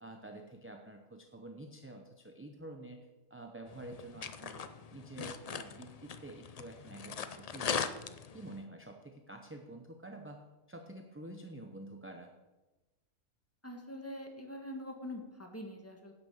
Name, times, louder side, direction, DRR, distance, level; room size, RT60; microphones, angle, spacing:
voice 1, 0.0-3.0 3.3-8.0 8.3-10.4 10.7-12.3, right 1 dB, 15° right, 3 dB, 0.6 m, -48 dB
sound 1, 3.7-8.6, left 6 dB, 60° left, 0.4 m, -40 dB
voice 2, 13.6-16.1, left 1 dB, 10° left, 2 dB, 1.6 m, -44 dB
10.5 x 7.1 x 7.3 m, 1.1 s
omnidirectional pair, 1.4 m